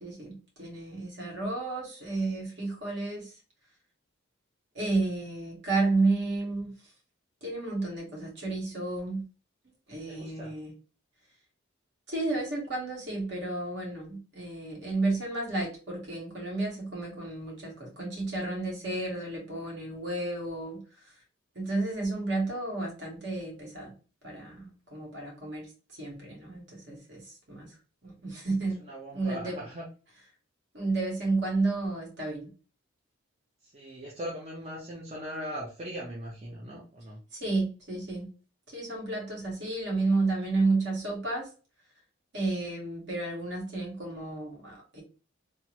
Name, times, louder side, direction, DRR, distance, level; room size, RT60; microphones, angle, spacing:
voice 1, 0.0-3.3 4.7-6.7 7.4-9.2 9.9-10.7 12.1-21.1 21.5-23.9 24.2-25.7 26.0-27.7 28.0-28.8 29.1-29.6 30.7-32.5 37.3-38.3 38.7-41.5 42.3-45.0, right 3 dB, 60° right, -2 dB, 1.3 m, -31 dB
voice 2, 10.1-10.5 28.8-29.9 33.6-37.2, equal, 30° right, -4 dB, 0.6 m, -39 dB
3.4 x 2.0 x 2.9 m, 0.36 s
head